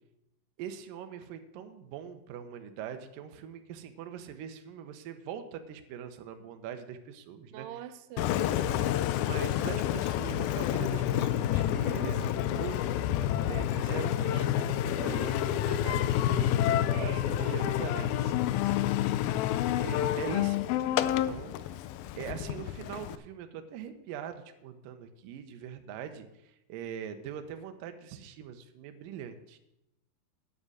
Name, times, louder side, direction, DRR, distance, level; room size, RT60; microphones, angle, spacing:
voice 1, 0.6-7.7 9.1-12.8 13.5-19.0 19.8-21.8 22.2-29.6, right 8 dB, 70° right, 2.3 m, -42 dB
voice 2, 7.5-9.1 16.9-17.7, right 11 dB, 90° right, 2.8 m, -43 dB
Engine, 8.2-23.2, left 12 dB, 80° left, 2.2 m, -29 dB
9.7 x 7.9 x 6.4 m
omnidirectional pair, 4.6 m